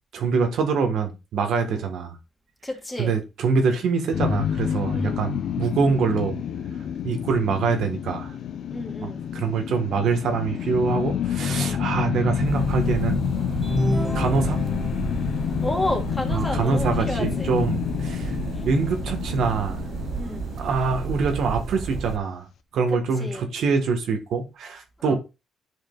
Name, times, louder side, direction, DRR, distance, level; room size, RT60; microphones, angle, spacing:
voice 1, 0.1-2.2 3.0-6.4 7.0-8.3 9.0-13.2 14.1-14.6 16.3-18.3 18.6-19.8 20.6-22.5 22.7-25.1, right 5 dB, 75° right, 1.2 m, -24 dB
voice 2, 2.6-3.1 4.9-5.3 8.7-9.3 11.5-11.9 15.6-17.5 18.5-18.6 20.1-20.5 23.2-23.5 25.0-25.1, left 1 dB, 15° left, 2.0 m, -31 dB
sound 1, 4.1-21.3, left 8 dB, 65° left, 0.6 m, -28 dB
sound 2, 12.4-22.2, right 5 dB, 55° right, 0.5 m, -32 dB
sound 3, 13.6-15.2, equal, 25° right, 2.4 m, -29 dB
9.5 x 5.0 x 2.3 m
cardioid pair, 90°, 0 cm